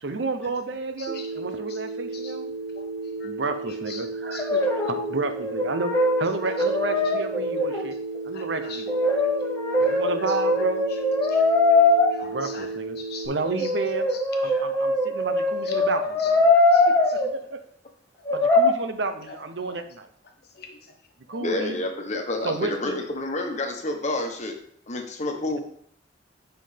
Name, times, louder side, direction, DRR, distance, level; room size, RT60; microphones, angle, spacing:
voice 1, 0.0-2.5 3.2-8.0 8.3-9.0 9.8-10.9 12.2-13.0 13.2-14.1 14.4-16.5 16.9-17.6 18.3-20.1 21.3-21.8 22.4-23.0, right 3 dB, 75° right, 8 dB, 0.7 m, -31 dB
Telephone, 1.1-13.3, right 3 dB, 50° right, 1.6 m, -34 dB
voice 2, 2.7-3.3 3.9-4.4 8.3-8.8 9.2-9.3 9.8-10.0 11.2-12.7 13.0-13.3 13.6-13.7 14.4-14.7 15.7-15.8 16.7-16.8 17.2-17.3 19.7-19.8 20.5-20.8 21.3-21.4, left 5 dB, 60° left, 3 dB, 1.2 m, -43 dB
Brass instrument, 4.4-5.1 5.4-7.9 8.9-12.1 13.4-17.3 18.2-18.7, left 2 dB, 15° left, 1.2 m, -22 dB
voice 3, 21.4-24.6 24.9-25.6, left 2 dB, 40° left, 3 dB, 1.2 m, -29 dB
7.7 x 5.6 x 3.4 m, 0.65 s
head